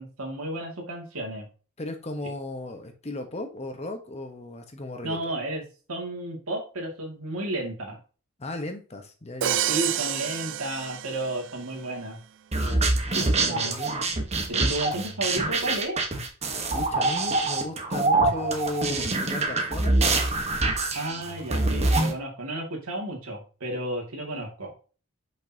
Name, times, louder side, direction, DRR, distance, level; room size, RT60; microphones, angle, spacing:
voice 1, 0.0-1.5 5.0-5.6 5.9-8.0 9.7-12.2 13.1-13.8 14.5-16.0 20.9-24.7, right 1 dB, 90° right, 1 dB, 2.2 m, -32 dB
voice 2, 1.8-5.3 8.4-9.6 12.5-14.1 16.7-20.0, left 1 dB, 30° left, 6 dB, 1.0 m, -36 dB
Crash cymbal, 9.4-11.6, right 11 dB, 60° right, 0.5 m, -29 dB
sound 1, 12.5-22.1, right 2 dB, 30° right, 1.2 m, -25 dB
6.5 x 5.4 x 2.8 m, 0.37 s
head